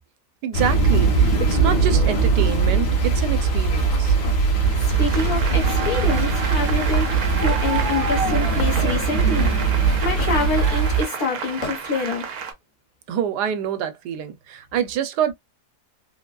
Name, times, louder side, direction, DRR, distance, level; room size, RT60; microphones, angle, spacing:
voice 1, 0.4-4.1 13.1-15.3, right 9 dB, 90° right, 1.2 m, -26 dB
sound 1, 0.5-11.0, right 4 dB, 85° left, 1.7 m, -20 dB
Applause, 4.6-12.5, right 6 dB, 65° right, 1.2 m, -30 dB
voice 2, 4.8-7.1 7.4-9.6 10.0-12.3, left 3 dB, 65° left, 1.7 m, -26 dB
Hammer / Wood, 7.4-7.6 8.8-8.9 10.2-10.5 11.6-11.8, left 2 dB, 40° left, 0.4 m, -31 dB
3.9 x 2.3 x 2.3 m
omnidirectional pair, 1.7 m